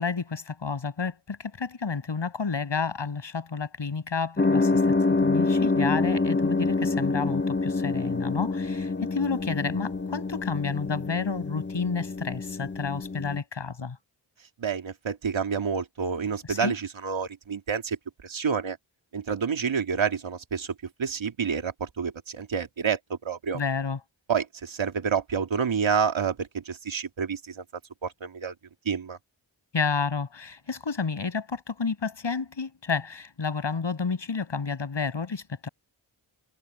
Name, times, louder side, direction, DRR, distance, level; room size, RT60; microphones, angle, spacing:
voice 1, 0.0-14.0 16.5-16.7 23.5-24.0 29.7-35.7, left 5 dB, 65° left, 6.4 m, -30 dB
sound 1, 4.4-13.4, left 3 dB, 25° left, 1.6 m, -26 dB
voice 2, 14.6-18.8 19.1-23.6 24.3-27.6 28.0-28.5 28.8-29.2, right 6 dB, 75° right, 2.5 m, -29 dB
cardioid pair, 50°, 47 cm